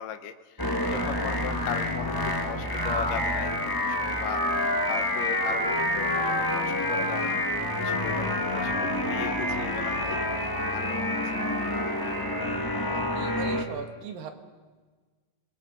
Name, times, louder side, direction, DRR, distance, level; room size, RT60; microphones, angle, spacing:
voice 1, 0.0-7.4 7.8-10.2 10.6-11.9, left 9 dB, 75° left, 8 dB, 2.7 m, -38 dB
sound 1, 0.6-13.6, left 1 dB, 10° left, 1.2 m, -28 dB
voice 2, 12.9-14.3, right 6 dB, 90° right, 6 dB, 3.5 m, -38 dB
27.0 x 22.0 x 5.4 m, 1.4 s
omnidirectional pair, 3.9 m